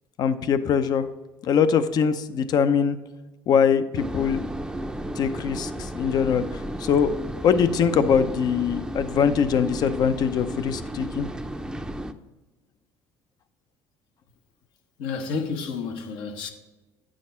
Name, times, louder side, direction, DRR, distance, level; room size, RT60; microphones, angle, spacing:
voice 1, 0.2-1.1 1.4-3.0 3.5-4.4 5.2-11.3, left 7 dB, 55° left, 0.7 m, -22 dB
sound 1, 4.0-12.1, right 1 dB, 10° right, 0.6 m, -33 dB
voice 2, 15.0-16.5, left 5 dB, 75° left, 1.2 m, -30 dB
9.5 x 6.4 x 4.4 m
supercardioid pair, 85°, 8 cm